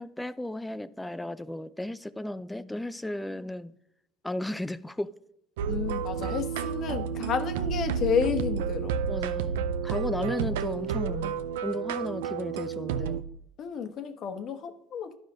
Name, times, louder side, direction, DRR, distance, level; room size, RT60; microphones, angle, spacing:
voice 1, 0.0-3.7 4.2-5.2 9.1-13.2, left 1 dB, 5° left, 0.5 m, -34 dB
sound 1, 5.6-13.2, right 7 dB, 85° right, 0.4 m, -30 dB
voice 2, 5.7-8.9 13.6-15.1, left 7 dB, 50° left, 1.0 m, -31 dB
11.5 x 5.0 x 3.8 m
supercardioid pair, 85°, 0 cm